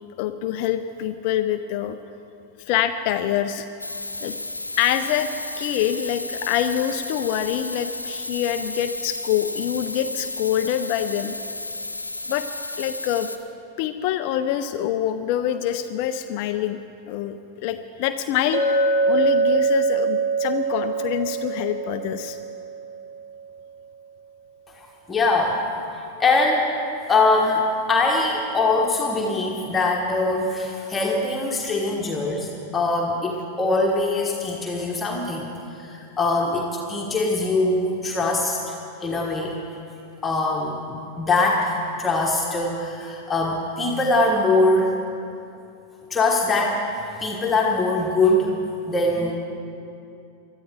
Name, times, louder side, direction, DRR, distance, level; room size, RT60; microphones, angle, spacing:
voice 1, 0.2-2.0 2.7-3.7 4.2-4.3 4.8-5.3 5.6-11.4 12.3-12.5 12.8-13.3 13.8-22.4, left 11 dB, 45° left, 8 dB, 0.5 m, -25 dB
sound 1, 3.8-13.4, left 2 dB, 85° left, 0.7 m, -33 dB
Chink clink, 18.5-23.0, right 3 dB, 45° right, 2.0 m, -23 dB
voice 2, 24.7-25.6 26.2-26.7 27.1-35.5 35.8-38.6 39.0-39.6 40.2-44.9 46.1-46.8 47.2-48.6 48.9-49.3, left 2 dB, 15° left, -1 dB, 1.4 m, -22 dB
23.0 x 13.0 x 3.7 m, 2.7 s
figure-of-eight pair, 90°, 0 cm